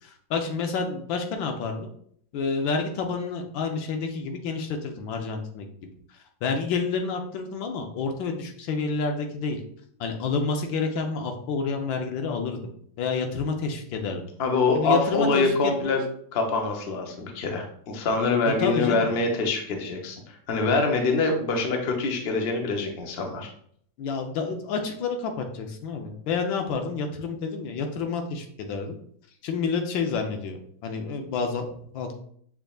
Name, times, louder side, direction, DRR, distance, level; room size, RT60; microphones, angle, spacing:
voice 1, 0.0-1.9 2.3-5.9 6.4-9.6 10.0-12.6 13.0-14.2 14.7-15.5 15.8-15.9 18.6-19.1 24.0-28.9 29.4-32.1, left 4 dB, 90° left, 4 dB, 1.5 m, -29 dB
voice 2, 14.4-16.0 16.3-20.2 20.5-23.5, left 3 dB, 55° left, 3 dB, 0.7 m, -24 dB
6.3 x 3.5 x 2.3 m, 0.62 s
omnidirectional pair, 2.0 m